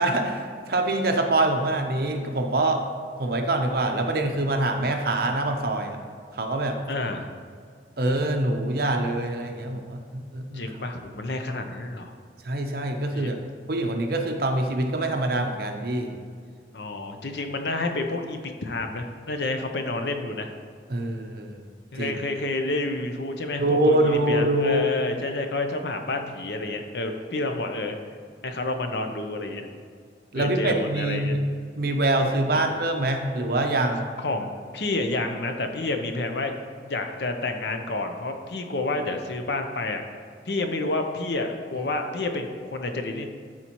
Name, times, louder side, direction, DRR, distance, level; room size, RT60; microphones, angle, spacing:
voice 1, 0.0-2.8 3.2-6.0 6.3-6.8 8.0-10.6 12.4-13.4 13.7-16.2 20.9-21.6 22.0-22.1 23.6-24.9 30.3-31.4 31.8-34.0, right 1 dB, 55° right, 4 dB, 0.7 m, -24 dB
voice 2, 6.9-7.3 10.5-12.1 13.1-13.4 16.7-20.5 21.9-28.0 28.4-29.7 30.3-31.4 32.5-32.6 34.2-34.5 34.7-36.5 36.8-40.0 40.5-43.3, left 2 dB, 65° left, 5 dB, 0.7 m, -29 dB
12.5 x 4.3 x 3.0 m, 2.1 s
head